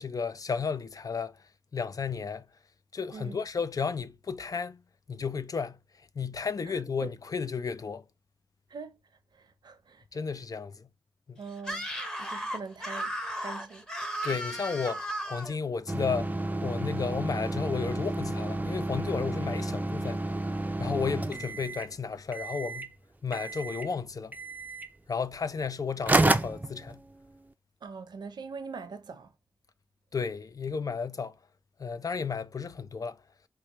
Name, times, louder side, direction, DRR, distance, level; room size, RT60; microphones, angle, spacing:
voice 1, 0.0-1.4 1.7-2.5 2.9-4.8 5.1-5.8 6.2-8.0 10.1-10.9 11.3-11.4 14.2-16.4 16.6-20.2 20.8-22.9 23.2-24.4 25.1-27.0 30.1-31.3 31.8-33.2, left 5 dB, 55° left, 0.5 m, -33 dB
voice 2, 3.1-3.4 6.7-7.1 8.7-8.9 9.4-10.0 11.4-11.9 12.2-13.8 27.8-29.3, right 5 dB, 90° right, 0.7 m, -42 dB
Screaming, 11.6-15.5, right 1 dB, 10° left, 0.9 m, -35 dB
sound 1, 15.9-21.9 22.3-22.9 23.3-23.9 24.3-24.9 25.7-25.8 26.0-27.4, right 2 dB, 25° right, 0.4 m, -30 dB
4.7 x 2.2 x 3.0 m
wide cardioid pair, 70°, 7 cm